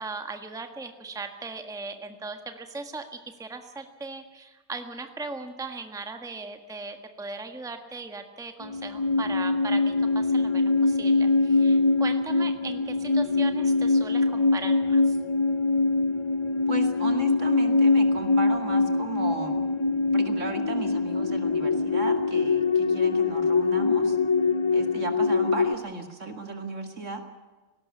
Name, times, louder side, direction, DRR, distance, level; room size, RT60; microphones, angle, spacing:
voice 1, 0.0-3.1 3.4-15.2, right 3 dB, ahead, 6 dB, 1.4 m, -38 dB
sound 1, 8.6-25.8, left 3 dB, 50° left, 0.3 m, -23 dB
voice 2, 16.7-19.6 20.1-24.2 24.7-27.3, right 3 dB, 55° right, 5 dB, 2.6 m, -35 dB
19.0 x 17.5 x 8.5 m, 1.3 s
omnidirectional pair, 1.5 m